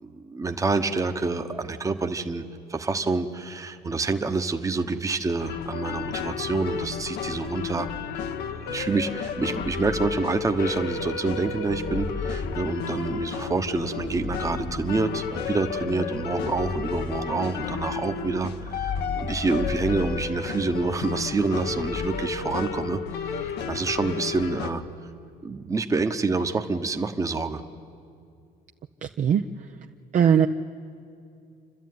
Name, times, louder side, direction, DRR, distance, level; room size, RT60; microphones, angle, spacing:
voice 1, 0.0-2.4 2.7-7.9 8.7-23.0 23.7-24.8 25.4-27.6, right 3 dB, 20° right, 6 dB, 1.1 m, -27 dB
sound 1, 5.4-24.7, left 6 dB, 75° left, 1.3 m, -32 dB
sound 2, 7.8-8.6 9.3-11.0 11.6-13.4 13.9-15.5 16.3-17.9 18.5-21.0 21.6-22.2, left 3 dB, 10° left, 1.1 m, -36 dB
voice 2, 29.0-29.4 30.1-30.5, right 8 dB, 50° right, 5 dB, 0.7 m, -19 dB
29.0 x 12.5 x 9.4 m, 2.5 s
cardioid pair, 110°, 17 cm